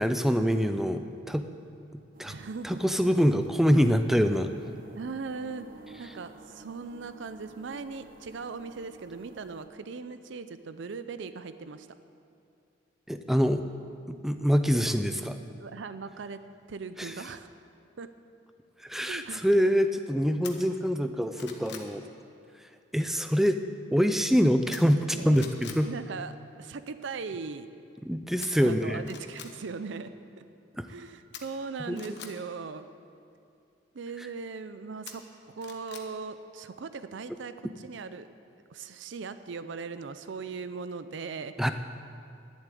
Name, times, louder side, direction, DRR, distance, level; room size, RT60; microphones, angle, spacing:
voice 1, 0.0-1.5 2.2-2.3 2.6-4.5 13.1-13.6 14.1-15.4 17.0-17.1 18.8-22.0 22.9-23.6 23.9-25.9 28.0-29.0 30.7-30.9 31.9-32.2 41.6-41.7, equal, ahead, 8 dB, 0.4 m, -25 dB
sound 1, 2.1-9.7, right 3 dB, 45° right, 0.9 m, -51 dB
voice 2, 2.3-2.8 5.0-5.7 6.0-11.9 15.6-16.4 16.7-17.5 18.0-18.1 19.1-19.4 25.1-25.4 25.8-27.7 28.6-30.4 30.9-32.9 33.9-38.3 38.7-41.7, right 4 dB, 70° right, 12 dB, 0.5 m, -39 dB
sound 2, 20.4-20.5 21.0-21.9 24.7-25.1 25.3-25.8 28.4-28.5 29.0-29.5 31.3-32.3 35.1-36.1 36.4-36.5, left 8 dB, 60° left, 1.1 m, -44 dB
11.5 x 7.2 x 9.1 m, 2.5 s
head